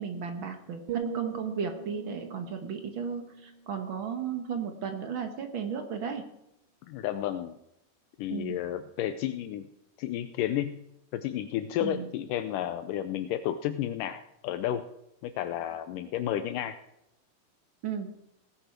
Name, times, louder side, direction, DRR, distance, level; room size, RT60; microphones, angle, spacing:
voice 1, 0.0-6.2 8.3-8.6 11.8-12.1 17.8-18.1, right 6 dB, 60° right, 6 dB, 1.3 m, -34 dB
sound 1, 0.9-4.9 5.2-5.6, right 8 dB, 85° right, 1.2 m, -41 dB
voice 2, 6.9-7.6 8.2-9.7 10.0-10.8 11.1-14.8 15.2-16.8, left 11 dB, 80° left, 10 dB, 2.2 m, -32 dB
18.0 x 10.5 x 4.6 m, 0.82 s
omnidirectional pair, 4.0 m